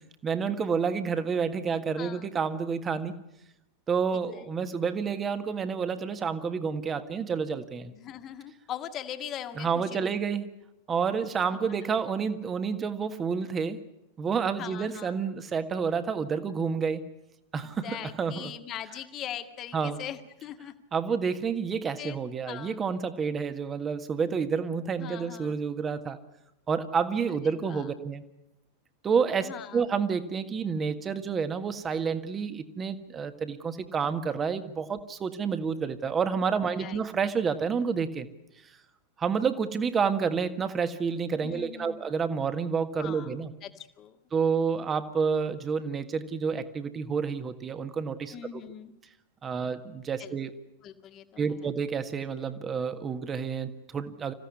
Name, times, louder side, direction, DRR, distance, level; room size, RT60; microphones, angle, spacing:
voice 1, 0.2-3.1 3.9-7.9 9.6-10.5 10.9-13.8 14.2-17.0 17.5-18.5 19.7-20.0 20.9-26.2 26.7-28.2 29.0-38.3 39.2-43.5 44.3-48.3 49.4-50.5 51.4-54.3, right 6 dB, 20° right, 10 dB, 1.7 m, -29 dB
voice 2, 2.0-2.3 4.3-4.4 7.9-10.1 14.6-15.2 17.6-20.8 22.0-22.2 22.5-22.8 25.0-25.6 27.4-27.9 29.4-29.8 36.8-37.0 41.4-42.1 43.0-43.3 43.6-44.2 48.3-48.9 50.2-50.4 50.8-51.4, left 10 dB, 30° left, 8 dB, 1.9 m, -41 dB
26.5 x 16.0 x 9.8 m, 0.88 s
figure-of-eight pair, 90°, 0 cm